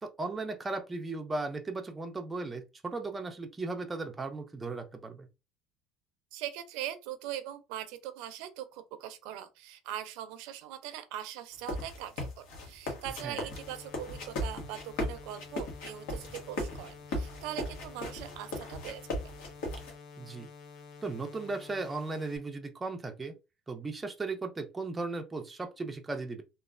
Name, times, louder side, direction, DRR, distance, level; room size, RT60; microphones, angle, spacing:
voice 1, 0.0-5.3 13.2-13.4 20.2-20.5 21.0-23.3 23.7-26.4, right 3 dB, 15° right, 0.4 m, -36 dB
voice 2, 6.3-19.3, right 12 dB, 70° right, 0.5 m, -41 dB
sound 1, 11.5-19.9, left 1 dB, 75° left, 1.2 m, -37 dB
sound 2, 13.4-22.4, left 5 dB, 45° left, 0.7 m, -50 dB
3.1 x 2.3 x 2.4 m
cardioid pair, 150°, 0 cm